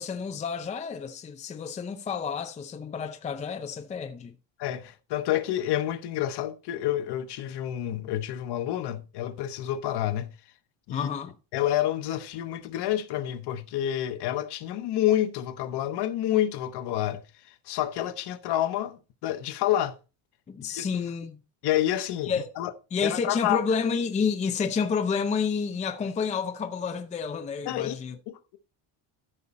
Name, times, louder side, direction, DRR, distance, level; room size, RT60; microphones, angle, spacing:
voice 1, 0.0-4.3 10.9-11.3 20.5-21.4 22.3-22.5 22.9-28.1, left 6 dB, 15° left, 0.5 m, -30 dB
voice 2, 4.6-10.3 10.9-11.1 11.5-20.0 20.7-21.0 21.6-22.7 23.0-23.6 27.6-28.0 28.3-28.6, left 12 dB, 55° left, 1.2 m, -28 dB
13.5 x 5.6 x 4.2 m
cardioid pair, 180°, 49 cm